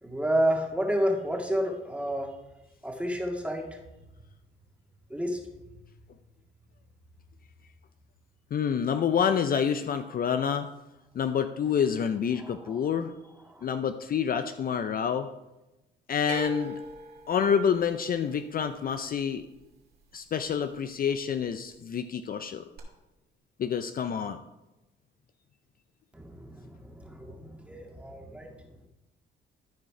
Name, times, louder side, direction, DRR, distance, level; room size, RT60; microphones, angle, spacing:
voice 1, 0.0-2.3 2.8-3.7 5.1-5.4 12.4-12.9 13.5-13.6 26.1-28.5, equal, 5° right, 1 dB, 1.9 m, -30 dB
voice 2, 8.5-10.7 11.2-13.1 13.6-15.3 16.1-16.7 17.3-19.5 20.1-22.7 23.6-24.4, left 7 dB, 45° left, 9 dB, 0.5 m, -28 dB
sound 1, 16.3-20.5 20.7-21.4 22.8-22.9, equal, 50° right, 2.7 m, -42 dB
13.0 x 5.0 x 4.9 m, 1.0 s
cardioid pair, 90°, 20 cm